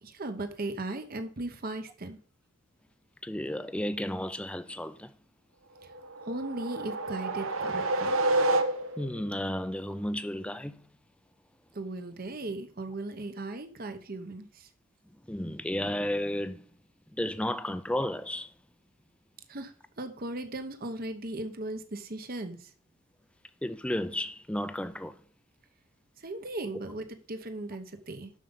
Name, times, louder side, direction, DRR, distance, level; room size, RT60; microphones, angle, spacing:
voice 1, 0.0-2.2 5.8-5.9 6.2-8.3 11.7-14.7 19.5-22.7 26.2-28.3, right 2 dB, 45° right, 0.9 m, -37 dB
voice 2, 3.2-5.1 9.0-10.8 15.3-16.6 17.2-18.5 23.6-25.2, left 1 dB, 5° left, 0.5 m, -33 dB
sound 1, 5.9-9.2, right 2 dB, 75° right, 0.9 m, -29 dB
7.6 x 6.7 x 3.8 m
head